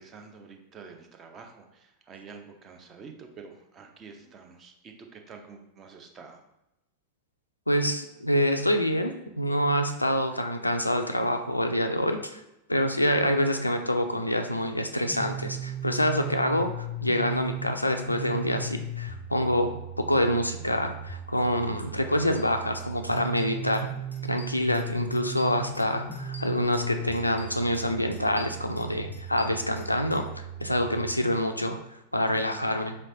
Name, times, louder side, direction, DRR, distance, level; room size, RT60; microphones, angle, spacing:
voice 1, 0.0-6.4, right 5 dB, 25° right, 4 dB, 0.5 m, -48 dB
voice 2, 7.7-12.4 12.7-19.7 20.0-23.9 24.3-30.3 30.6-31.8 32.1-33.0, left 1 dB, 85° left, 6 dB, 0.3 m, -26 dB
sound 1, 15.1-31.1, right 3 dB, 20° left, 0.5 m, -37 dB
sound 2, 22.3-22.4 22.7-22.9 23.1-23.9 24.1-24.8 25.1-26.9 27.1-27.8 28.1-30.2, left 2 dB, 85° right, 0.7 m, -47 dB
4.2 x 3.1 x 2.6 m, 0.87 s
figure-of-eight pair, 90°, 0 cm